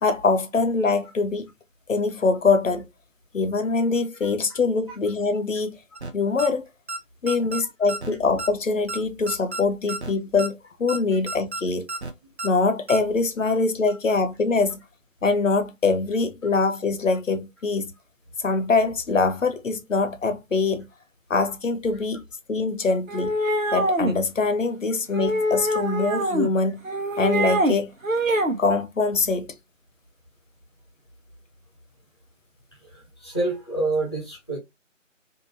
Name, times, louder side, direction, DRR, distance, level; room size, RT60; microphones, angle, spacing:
voice 1, 0.0-1.5 1.9-2.9 3.3-5.8 6.1-6.6 7.2-11.9 12.4-14.8 15.2-17.9 18.4-20.9 21.3-22.2 22.5-23.4 23.7-26.8 27.2-27.9 28.6-29.5, left 4 dB, 75° left, 0.7 m, -23 dB
sound 1, 6.0-6.1 6.4-6.5 6.9-7.0 7.3-7.6 7.9-8.1 8.4-8.5 8.9-9.0 9.3-9.6 9.9-10.1 10.4-10.5 10.9-11.0 11.3-11.6 11.9-12.1 12.4-12.5 12.9-13.0, right 3 dB, 55° right, 0.6 m, -31 dB
sound 2, 23.1-24.2 25.1-26.5 26.8-27.7 28.0-28.6, right 1 dB, 85° right, 0.9 m, -24 dB
voice 2, 32.8-34.6, right 2 dB, 20° left, 0.9 m, -28 dB
3.5 x 2.6 x 2.6 m
figure-of-eight pair, 165°, 39 cm